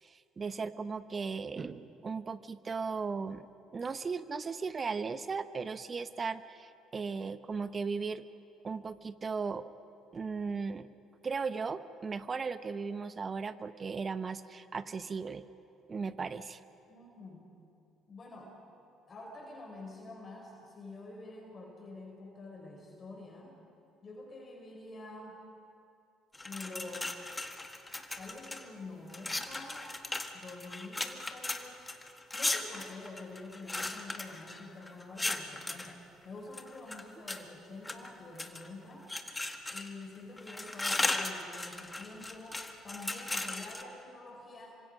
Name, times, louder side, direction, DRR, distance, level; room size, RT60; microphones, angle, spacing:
voice 1, 0.0-3.5 3.7-8.2 8.6-9.7 10.1-10.9 11.2-15.4 15.9-16.6, right 5 dB, 35° right, 13 dB, 1.0 m, -37 dB
voice 2, 16.9-17.5 18.1-18.6 19.1-23.6 24.0-25.4 26.4-27.3 28.2-30.0 30.3-31.8 32.3-39.1 39.7-44.8, left 2 dB, 35° left, -1 dB, 4.9 m, -47 dB
sound 1, 26.3-28.7 29.1-35.9 36.5-37.4 37.8-38.7 39.1-40.0 40.4-43.8, left 2 dB, 15° left, 1.8 m, -37 dB
27.0 x 25.5 x 5.5 m, 2.7 s
hypercardioid pair, 55°, 0 cm